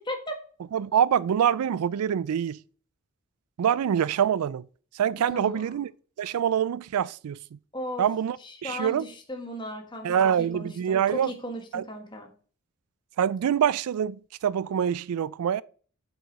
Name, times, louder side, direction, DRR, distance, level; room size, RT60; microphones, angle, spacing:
voice 1, 0.7-2.6 3.6-4.7 4.9-5.9 6.2-7.4 8.0-8.4 8.6-9.0 10.0-11.3 11.7-11.8 13.2-15.6, right 8 dB, 90° right, 0.3 m, -25 dB
voice 2, 5.3-5.7 7.7-8.0 8.4-12.3, equal, 20° left, 1.5 m, -37 dB
8.8 x 6.0 x 4.1 m
head